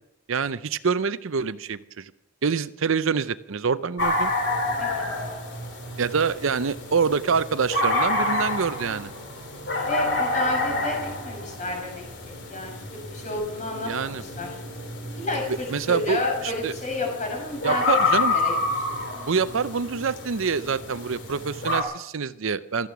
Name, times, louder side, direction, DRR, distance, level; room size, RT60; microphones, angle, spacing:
voice 1, 0.3-2.1 2.4-4.3 6.0-9.1 13.8-14.2 15.7-16.7 17.6-18.3 19.3-22.9, right 5 dB, 65° right, 14 dB, 0.6 m, -26 dB
sound 1, 4.0-21.8, left 2 dB, 50° left, 3.3 m, -29 dB
voice 2, 9.9-14.5 15.1-17.9 18.3-18.5, left 2 dB, 35° left, 1 dB, 6.2 m, -31 dB
16.0 x 13.5 x 6.0 m, 0.84 s
head